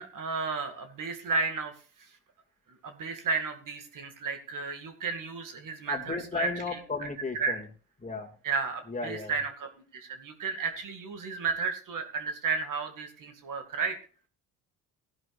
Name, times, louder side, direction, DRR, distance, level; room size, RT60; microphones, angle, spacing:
voice 1, 0.0-1.7 2.0-2.1 2.7-6.5 7.0-7.1 7.4-7.6 8.4-14.0, right 4 dB, 50° right, 6 dB, 2.4 m, -33 dB
voice 2, 5.9-7.7 8.0-8.3 8.9-9.3, left 4 dB, 20° left, 3 dB, 2.4 m, -34 dB
17.5 x 11.0 x 2.6 m, 0.38 s
supercardioid pair, 75°, 39 cm